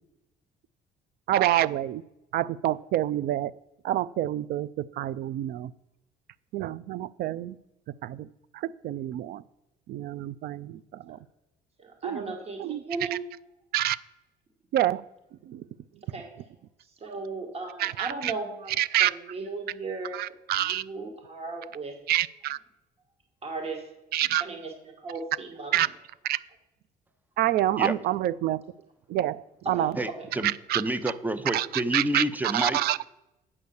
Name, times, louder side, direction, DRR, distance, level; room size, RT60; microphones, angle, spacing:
voice 1, 1.3-2.0 2.3-3.5 3.8-5.7 6.5-7.6 8.0-8.3 8.5-9.4 9.9-11.2 12.0-12.3 12.6-12.8 13.7-14.0 14.7-15.0 15.5-15.7 17.8-18.3 18.8-19.1 20.1-20.8 22.1-22.6 24.1-24.4 25.7-25.9 26.2-26.4 27.4-28.6 29.1-29.9 30.7-30.8 31.5-33.1, right 13 dB, 65° right, 20 dB, 0.4 m, -27 dB
voice 2, 11.8-13.2 16.0-16.3 16.8-22.0 23.4-23.9 24.4-25.8 29.6-30.3, right 3 dB, 35° right, 3 dB, 1.9 m, -37 dB
voice 3, 30.4-32.8, right 1 dB, 10° right, 13 dB, 0.7 m, -28 dB
8.6 x 6.5 x 6.9 m, 0.94 s
cardioid pair, 110°, 17 cm